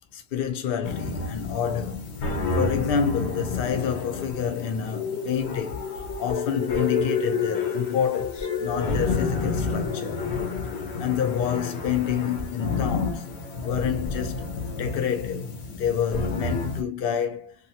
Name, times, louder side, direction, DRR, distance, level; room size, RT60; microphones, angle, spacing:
voice 1, 0.1-2.1 2.5-5.9 6.2-10.2 11.0-13.3 13.6-17.6, left 8 dB, 65° left, 0.7 m, -28 dB
sound 1, 0.8-16.8, left 4 dB, 85° left, 0.9 m, -29 dB
2.7 x 2.2 x 2.7 m
omnidirectional pair, 1.1 m